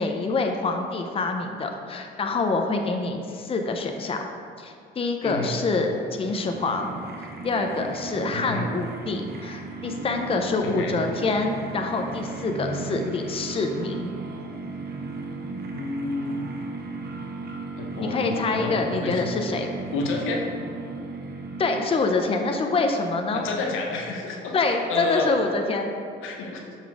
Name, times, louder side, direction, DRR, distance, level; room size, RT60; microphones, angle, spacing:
voice 1, 0.0-4.2 4.6-6.9 7.4-14.1 18.0-19.7 21.6-23.4 24.5-25.9, left 3 dB, 30° left, 4 dB, 0.5 m, -26 dB
voice 2, 5.2-5.5 8.3-8.6 10.6-11.0 15.7-16.5 17.8-19.2 19.9-20.5 23.3-25.3 26.2-26.8, left 3 dB, 85° left, 2 dB, 0.9 m, -30 dB
sound 1, 5.6-22.3, right 3 dB, 55° right, 0.8 m, -36 dB
6.1 x 4.1 x 4.7 m, 2.3 s
cardioid pair, 90°, 20 cm